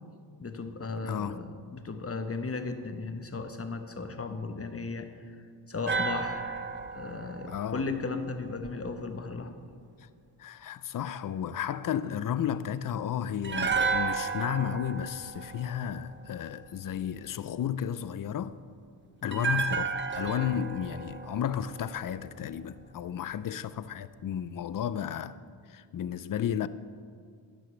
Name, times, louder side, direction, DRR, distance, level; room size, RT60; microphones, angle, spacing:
voice 1, 0.4-6.6 6.9-9.6 19.2-19.6, left 3 dB, 30° left, 1.1 m, -36 dB
voice 2, 1.0-1.4 7.5-7.8 10.4-18.6 19.2-25.4 25.7-26.7, left 9 dB, 45° left, 0.5 m, -33 dB
sound 1, 5.9-9.0 13.4-16.7 19.3-22.5 22.8-22.9, right 5 dB, 25° right, 0.8 m, -33 dB
13.0 x 10.5 x 3.3 m
cardioid pair, 65°, 49 cm